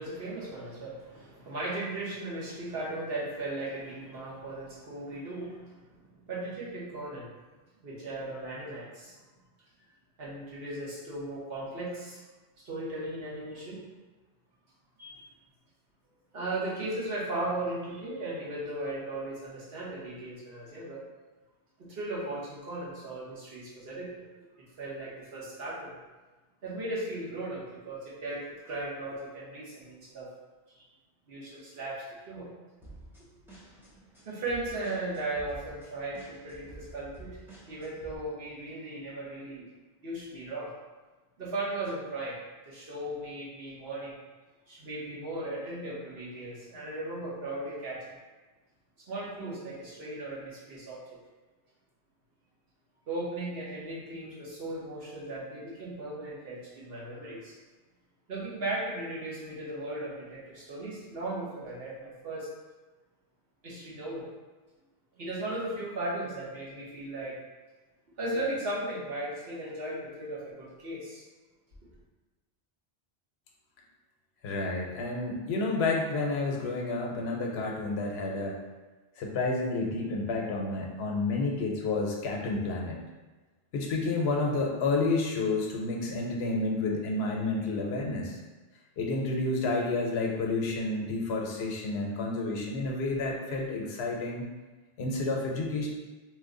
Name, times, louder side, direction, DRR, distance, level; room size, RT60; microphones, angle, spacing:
voice 1, 0.0-6.0 6.3-7.3 7.8-9.2 10.2-12.2 12.6-13.8 15.0-15.2 16.3-21.0 21.8-24.1 24.8-25.9 26.6-30.3 30.7-30.8 31.3-32.5 34.2-39.6 40.0-40.7 41.4-42.4 42.7-44.2 44.7-48.0 49.1-51.0 53.1-57.5 58.3-62.5 63.6-64.2 65.1-67.3 68.2-71.2, right 2 dB, 70° right, -7 dB, 1.2 m, -37 dB
sound 1, 32.8-38.2, right 1 dB, 5° right, 0.5 m, -50 dB
voice 2, 74.4-78.6 79.2-83.0 83.7-88.4 89.0-94.4 95.0-95.9, left 3 dB, 85° left, 0 dB, 0.9 m, -30 dB
3.0 x 2.2 x 3.7 m, 1.2 s
omnidirectional pair, 1.1 m